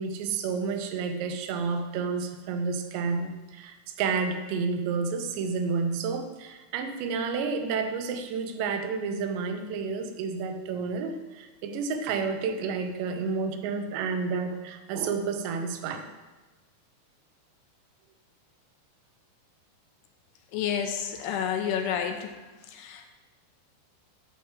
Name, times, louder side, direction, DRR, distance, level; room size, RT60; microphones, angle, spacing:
voice 1, 0.0-16.1, right 5 dB, 90° right, 7 dB, 3.1 m, -30 dB
voice 2, 20.5-22.4 22.7-23.1, left 8 dB, 80° left, 6 dB, 2.5 m, -30 dB
10.0 x 5.1 x 7.3 m, 1.2 s
omnidirectional pair, 4.9 m